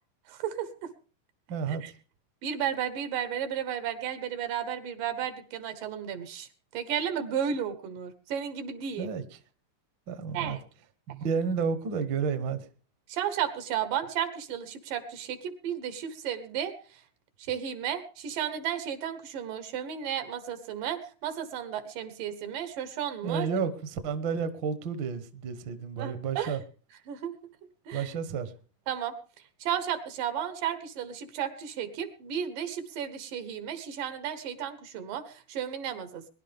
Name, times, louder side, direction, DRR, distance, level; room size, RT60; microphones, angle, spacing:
voice 1, 0.3-0.9 1.7-1.9 2.4-9.1 10.3-10.6 13.1-16.8 17.5-23.5 26.0-26.6 27.1-27.3 27.9-28.1 28.9-29.1 29.6-36.3, right 9 dB, 80° right, 3.0 m, -33 dB
voice 2, 1.5-1.8 9.0-9.4 10.1-10.6 11.1-12.7 23.2-26.6 27.9-28.5, right 6 dB, 55° right, 1.3 m, -31 dB
21.5 x 11.0 x 3.6 m
omnidirectional pair, 3.8 m